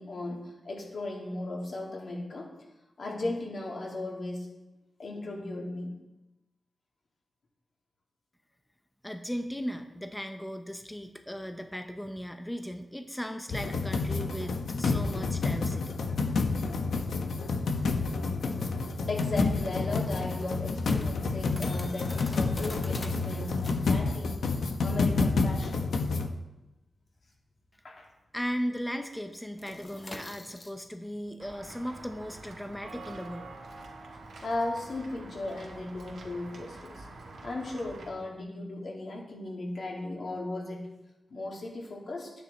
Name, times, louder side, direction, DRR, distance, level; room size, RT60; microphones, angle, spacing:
voice 1, 0.0-2.5 3.0-4.5 5.0-5.9 19.1-24.4 24.8-25.8 27.8-28.1 34.4-37.1 37.4-40.9 41.3-42.3, left 2 dB, 50° left, -2 dB, 2.7 m, -36 dB
voice 2, 9.0-16.0 28.3-33.5, equal, 5° left, 6 dB, 0.6 m, -37 dB
sound 1, 13.5-26.3, left 3 dB, 80° left, 1.0 m, -29 dB
sound 2, 20.8-28.3 28.6-28.8 29.1-34.9, left 2 dB, 25° left, 1.1 m, -47 dB
Walk footsteps / Bell, 31.4-38.1, right 2 dB, 80° right, 2.2 m, -46 dB
12.0 x 9.4 x 4.3 m, 1.0 s
wide cardioid pair, 150°, 0 cm